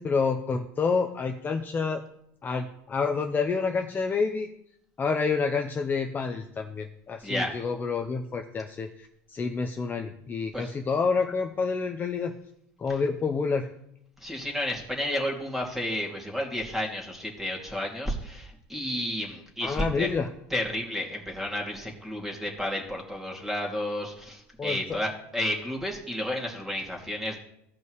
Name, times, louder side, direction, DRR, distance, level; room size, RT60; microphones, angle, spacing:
voice 1, 0.0-2.0 2.4-4.5 5.0-12.3 12.8-13.7 19.6-20.3 24.6-25.0, left 5 dB, 25° left, 3 dB, 0.7 m, -28 dB
voice 2, 14.2-20.1 20.5-27.4, left 1 dB, 5° right, 0 dB, 2.5 m, -31 dB
16.0 x 5.4 x 3.1 m, 0.76 s
supercardioid pair, 105°, 7 cm